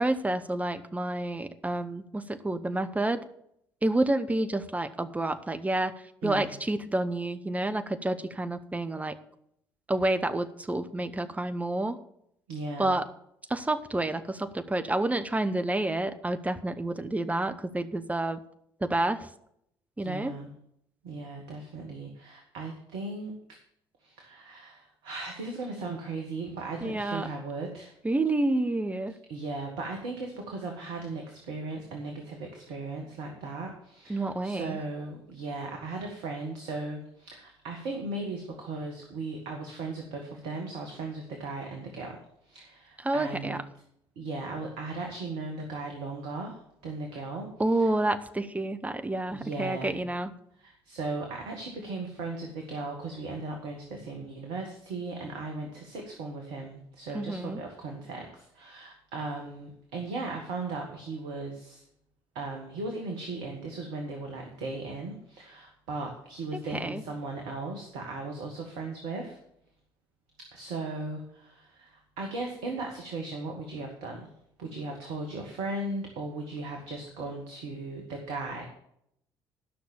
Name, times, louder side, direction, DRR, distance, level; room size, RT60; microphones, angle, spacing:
voice 1, 0.0-3.2 3.8-9.1 9.9-12.0 12.8-13.0 13.5-18.4 18.8-19.3 20.0-20.3 26.8-27.3 28.0-29.1 34.1-34.8 43.0-43.6 47.6-50.3 57.1-57.6 66.7-67.0, right 2 dB, 10° right, 8 dB, 1.1 m, -29 dB
voice 2, 6.2-6.5 12.5-12.9 20.0-20.5 21.0-23.3 24.0-27.9 29.3-43.6 44.2-48.0 49.3-50.0 50.6-61.8 62.4-69.4 70.5-74.3 74.6-78.7, right 3 dB, 60° right, 2 dB, 1.7 m, -37 dB
12.0 x 6.0 x 7.2 m, 0.73 s
figure-of-eight pair, 50°, 12 cm